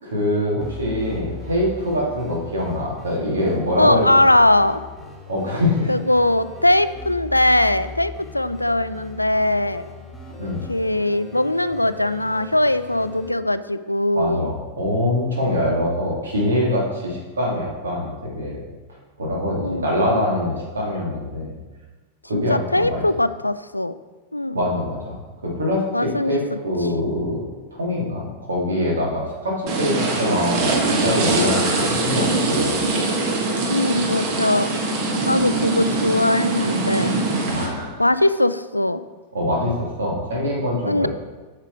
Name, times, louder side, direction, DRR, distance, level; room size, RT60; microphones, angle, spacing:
voice 1, 0.0-4.0 5.3-5.9 10.4-10.6 14.1-18.6 19.2-21.6 22.3-23.0 24.5-25.2 25.4-27.4 27.7-32.8 37.5-37.9 39.3-41.1, left 1 dB, 70° right, -3 dB, 2.6 m, -24 dB
sound 1, 0.6-13.3, left 3 dB, 5° left, 2.2 m, -39 dB
voice 2, 3.8-4.8 5.9-9.9 10.7-14.5 19.6-19.9 22.3-23.9 24.3-24.6 25.9-26.6 33.7-34.7 35.3-37.1 38.0-39.0 40.9-41.1, left 1 dB, 85° left, 14 dB, 0.3 m, -20 dB
sound 2, 29.7-37.7, right 2 dB, 45° right, 1.4 m, -22 dB
8.5 x 6.6 x 4.6 m, 1.2 s
figure-of-eight pair, 90°, 0 cm